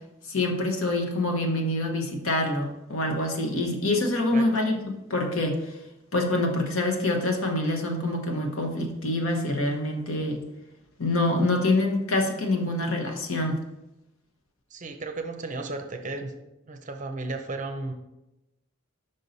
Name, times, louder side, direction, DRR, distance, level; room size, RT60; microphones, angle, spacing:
voice 1, 0.3-5.8 6.1-10.4 11.0-13.6, left 2 dB, 70° left, 3 dB, 1.0 m, -26 dB
voice 2, 14.7-16.3 16.7-17.9, right 3 dB, 35° right, 6 dB, 0.6 m, -34 dB
5.4 x 5.4 x 4.0 m, 0.93 s
head